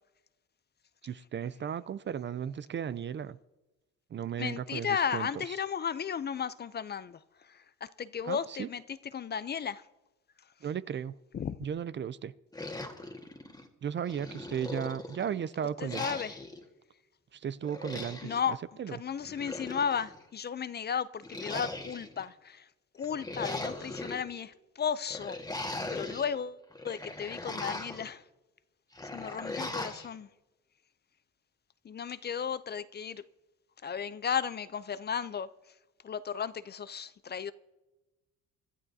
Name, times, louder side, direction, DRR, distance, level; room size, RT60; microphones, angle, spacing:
voice 1, 1.0-3.4 4.1-5.6 8.2-8.7 10.6-11.1 11.6-12.3 13.8-16.1 17.3-18.4 18.8-19.0, right 8 dB, 40° right, 0.4 m, -35 dB
voice 2, 4.4-7.2 8.0-8.8 9.1-9.8 11.3-11.6 15.8-16.4 18.2-18.6 18.9-22.6 23.0-25.4 25.9-26.6 26.8-28.2 29.1-30.3 31.9-33.2 33.8-35.5 36.0-37.5, left 7 dB, 35° left, 0.5 m, -34 dB
sound 1, 12.5-13.7 14.1-15.3 15.9-16.6 17.6-18.4 19.2-20.2 21.2-22.2 23.0-24.2 25.1-26.3 26.7-28.1 28.9-30.1, left 2 dB, 10° left, 1.6 m, -39 dB
25.0 x 12.5 x 2.7 m
cardioid pair, 90°, 30 cm